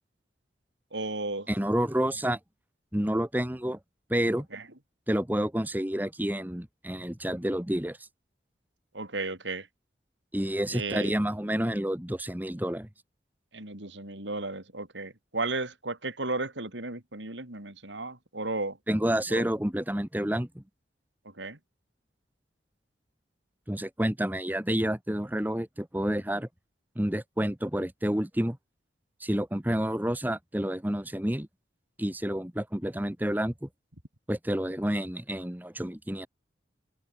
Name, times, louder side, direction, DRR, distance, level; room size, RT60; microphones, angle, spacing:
voice 1, 0.9-1.5 4.5-4.6 8.9-9.7 10.7-11.1 13.5-18.8 19.3-19.4 21.4-21.6, right 2 dB, 85° right, 5.0 m, -34 dB
voice 2, 1.5-2.4 2.9-3.8 4.1-4.5 5.1-8.1 10.3-12.9 18.9-20.6 23.7-26.5 26.9-28.6 29.2-31.5 32.0-33.7 34.3-36.3, equal, 10° right, 1.2 m, -29 dB
open air
head